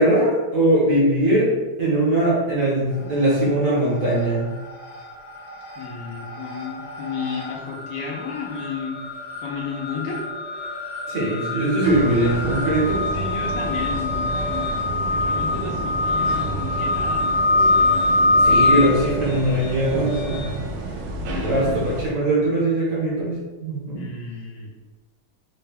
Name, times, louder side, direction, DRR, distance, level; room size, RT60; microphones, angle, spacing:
voice 1, 0.0-1.5 1.8-4.5 11.1-13.0 18.4-20.4 21.4-23.3 23.6-24.0, right 1 dB, 50° right, -7 dB, 1.1 m, -20 dB
sound 1, 3.0-3.6 3.9-20.5, left 2 dB, 90° left, 1.6 m, -25 dB
voice 2, 5.8-9.0 9.4-10.2 12.0-12.1 13.1-18.7 20.7-21.9 23.9-24.7, left 5 dB, 75° left, -2 dB, 1.2 m, -33 dB
sound 2, 11.8-22.1, right 2 dB, 75° right, 1.2 m, -31 dB
4.3 x 2.2 x 3.3 m, 1.2 s
omnidirectional pair, 2.2 m